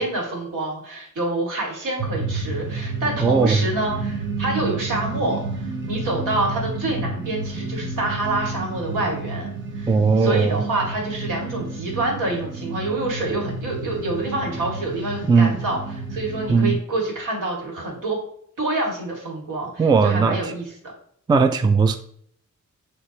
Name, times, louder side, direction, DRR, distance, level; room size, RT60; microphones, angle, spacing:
voice 1, 0.0-9.5 9.7-15.8 16.1-18.2 18.6-20.6, right 2 dB, 80° right, -1 dB, 2.3 m, -27 dB
sound 1, 2.0-16.7, right 3 dB, 40° right, 1.0 m, -30 dB
voice 2, 3.2-3.6 9.9-10.6 15.3-15.5 16.5-16.8 19.8-20.5 21.3-22.0, right 4 dB, 15° right, 9 dB, 0.3 m, -18 dB
9.8 x 3.4 x 3.0 m, 0.64 s
wide cardioid pair, 135°, 31 cm